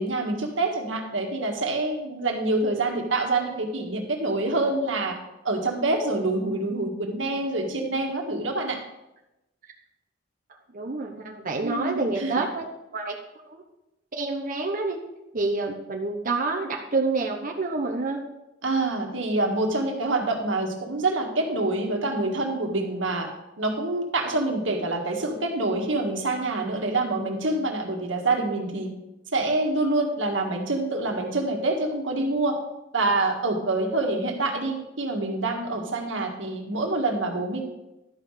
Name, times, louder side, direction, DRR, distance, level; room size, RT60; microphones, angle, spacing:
voice 1, 0.0-5.2 5.4-8.8 11.6-12.4 18.6-23.3 23.6-28.9 29.3-32.6 32.9-37.6, right 2 dB, 90° right, 3 dB, 1.7 m, -26 dB
voice 2, 10.7-12.7 12.9-13.2 13.5-13.6 14.1-15.0 15.3-18.2, right 3 dB, 45° right, 1 dB, 1.0 m, -28 dB
11.5 x 5.7 x 6.5 m, 0.96 s
head